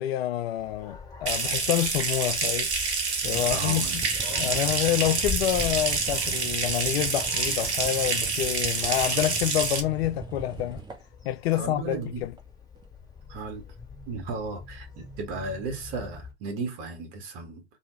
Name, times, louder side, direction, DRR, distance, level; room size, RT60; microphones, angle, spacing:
voice 1, 0.0-2.7 3.2-10.8 11.2-12.3, left 13 dB, 65° left, 0.5 m, -28 dB
Dog, 0.6-16.3, left 5 dB, 10° left, 1.7 m, -43 dB
Water tap faucet / Sink (filling or washing) / Trickle dribble, 1.3-9.8, right 4 dB, 75° right, 0.9 m, -27 dB
sound 1, 3.2-11.1 12.4-12.5 12.8-12.9, right 4 dB, 15° right, 0.7 m, -40 dB
voice 2, 3.5-4.0 11.5-12.2 13.3-13.7 14.1-17.6, right 3 dB, 55° right, 1.4 m, -35 dB
2.8 x 2.7 x 3.2 m
figure-of-eight pair, 80°, 33 cm